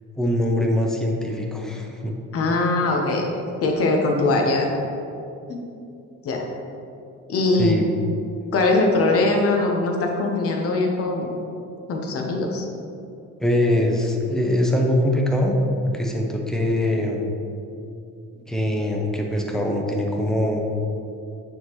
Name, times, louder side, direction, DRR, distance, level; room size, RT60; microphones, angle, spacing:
voice 1, 0.2-2.1 7.6-7.8 13.4-15.6 15.8-17.3 18.5-20.6, left 1 dB, ahead, 0 dB, 0.4 m, -22 dB
voice 2, 2.3-4.7 5.5-5.6 6.2-6.4 7.3-7.8 8.5-11.4 11.9-12.6, left 2 dB, 45° left, 1 dB, 0.8 m, -21 dB
9.1 x 3.7 x 3.0 m, 2.7 s
cardioid pair, 170°, 32 cm